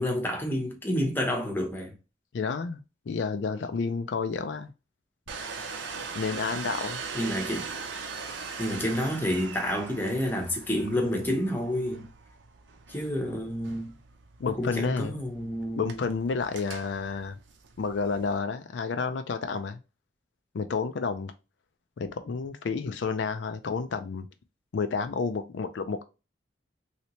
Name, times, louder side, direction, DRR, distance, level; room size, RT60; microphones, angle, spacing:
voice 1, 0.0-1.9 7.1-7.7 8.6-12.1 12.9-13.9 14.6-16.0, equal, 10° left, 0.7 m, -29 dB
voice 2, 2.3-4.7 6.1-7.0 14.4-15.2 15.8-17.3 17.8-19.8 20.5-21.3 22.0-24.3 24.7-26.0, left 5 dB, 70° left, 0.4 m, -30 dB
Domestic sounds home sounds, 5.3-18.4, right 5 dB, 80° right, 0.6 m, -41 dB
3.2 x 2.8 x 2.9 m
head